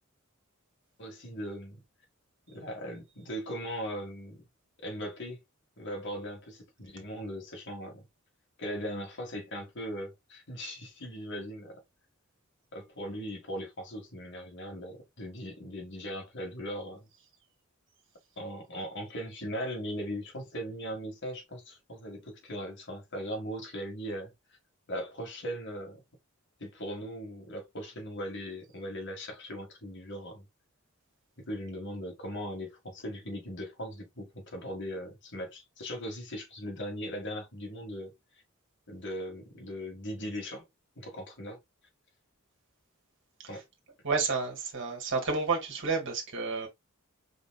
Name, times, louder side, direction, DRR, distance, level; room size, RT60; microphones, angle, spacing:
voice 1, 1.0-1.8 2.5-4.4 4.8-5.4 5.8-8.1 8.6-11.8 12.7-17.1 18.4-24.3 24.9-26.0 26.6-30.4 31.4-38.1 38.9-40.6 41.0-41.6 43.5-43.6, equal, 60° left, 1.8 m, -39 dB
voice 2, 44.0-46.7, right 4 dB, 60° right, 1.9 m, -30 dB
5.1 x 3.8 x 2.3 m
head